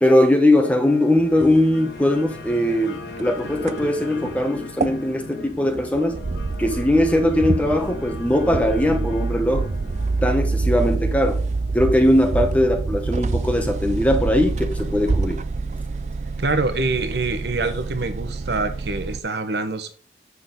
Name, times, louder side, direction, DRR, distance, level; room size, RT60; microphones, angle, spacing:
voice 1, 0.0-6.2 6.6-9.7 10.2-11.4 11.7-15.4, left 1 dB, 10° left, 0.9 m, -20 dB
sound 1, 0.6-17.0, left 3 dB, 90° left, 1.4 m, -40 dB
sound 2, 1.2-19.2, right 3 dB, 40° right, 0.4 m, -27 dB
voice 2, 16.4-19.9, right 3 dB, 75° right, 1.2 m, -25 dB
8.3 x 6.1 x 3.8 m
head